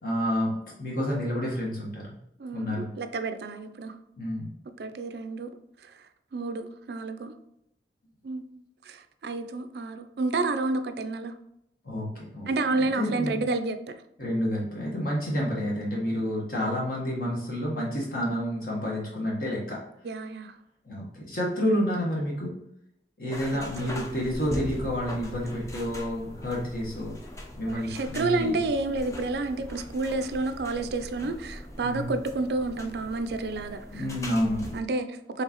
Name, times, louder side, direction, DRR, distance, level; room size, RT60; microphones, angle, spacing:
voice 1, 0.0-0.5 0.8-2.0 2.5-2.9 4.2-4.5 11.8-13.4 14.2-19.8 20.8-22.5 23.2-27.1 27.6-28.6 31.8-32.1 33.9-34.7, equal, 55° left, -4 dB, 1.1 m, -29 dB
voice 2, 2.4-3.9 4.8-5.5 6.3-7.3 8.2-8.4 8.9-11.3 12.5-13.8 20.0-20.5 23.5-24.1 27.7-34.1 34.7-35.4, right 3 dB, 60° right, 9 dB, 0.4 m, -30 dB
sound 1, 23.3-34.8, left 1 dB, 15° left, 0.5 m, -40 dB
4.6 x 3.3 x 2.9 m, 0.78 s
head